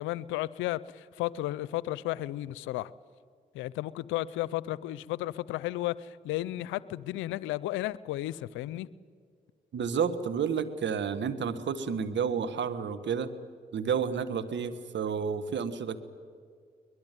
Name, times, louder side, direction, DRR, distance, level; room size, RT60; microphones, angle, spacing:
voice 1, 0.0-2.9 3.5-8.9, left 16 dB, 90° left, 0.6 m, -33 dB
voice 2, 9.7-13.3 13.7-16.0, right 6 dB, 70° right, 1.6 m, -30 dB
22.5 x 20.5 x 9.3 m
supercardioid pair, 40°, 19 cm